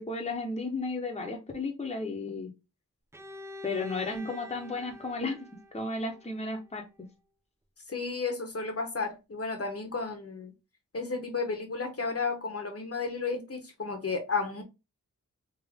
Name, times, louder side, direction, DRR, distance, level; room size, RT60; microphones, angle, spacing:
voice 1, 0.0-2.5 3.6-5.4 5.7-6.9, left 3 dB, 20° left, 0.8 m, -33 dB
Bowed string instrument, 3.1-6.9, left 2 dB, 10° right, 0.4 m, -46 dB
voice 2, 7.9-10.5 10.9-14.6, left 4 dB, 45° left, 0.9 m, -33 dB
3.5 x 2.8 x 3.4 m
wide cardioid pair, 90°, 33 cm